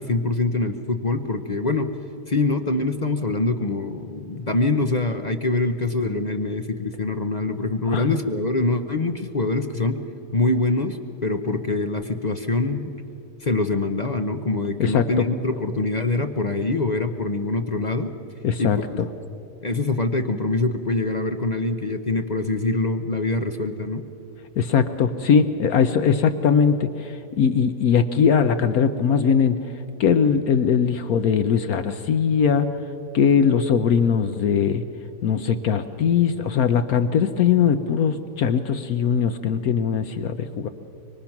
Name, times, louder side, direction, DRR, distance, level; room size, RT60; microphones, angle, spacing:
voice 1, 0.0-1.9 2.3-10.0 10.3-12.9 13.4-18.1 18.6-19.0 19.6-24.0, left 2 dB, 40° left, 6 dB, 0.7 m, -24 dB
voice 2, 14.8-15.2 18.4-19.1 24.6-29.6 30.0-32.7 33.1-34.8 35.2-40.7, left 7 dB, 65° left, 10 dB, 1.2 m, -20 dB
25.5 x 23.0 x 5.9 m, 3.0 s
omnidirectional pair, 1.7 m